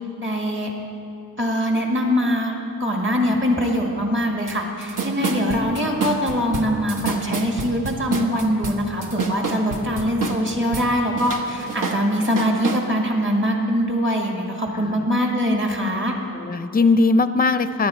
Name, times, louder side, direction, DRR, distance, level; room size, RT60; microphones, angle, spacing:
voice 1, 0.2-0.7 1.4-16.1, equal, 35° right, 1 dB, 2.0 m, -23 dB
sound 1, 4.5-4.6 4.8-10.9 11.2-12.8, right 5 dB, 60° right, 1.1 m, -27 dB
voice 2, 5.2-5.6 14.7-15.0 16.3-17.9, left 3 dB, 25° left, 11 dB, 0.5 m, -20 dB
18.0 x 11.5 x 4.4 m, 2.5 s
wide cardioid pair, 90°, 35 cm